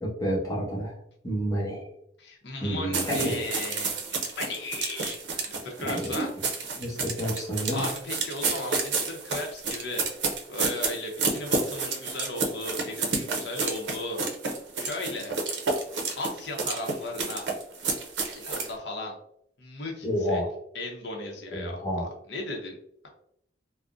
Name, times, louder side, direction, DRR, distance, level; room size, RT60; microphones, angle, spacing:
voice 1, 0.0-0.9 1.2-1.9 2.6-3.4 5.8-6.3 6.8-7.8 20.0-20.5 21.5-22.1, equal, 20° left, -4 dB, 1.0 m, -29 dB
voice 2, 2.2-6.3 7.7-10.1 10.5-14.2 14.8-15.3 16.2-17.5 18.4-19.1 19.6-20.4 20.7-22.8, left 2 dB, 75° left, 1 dB, 0.7 m, -36 dB
sound 1, 2.9-18.7, right 4 dB, 75° right, 0.5 m, -30 dB
3.5 x 2.1 x 2.5 m, 0.72 s
head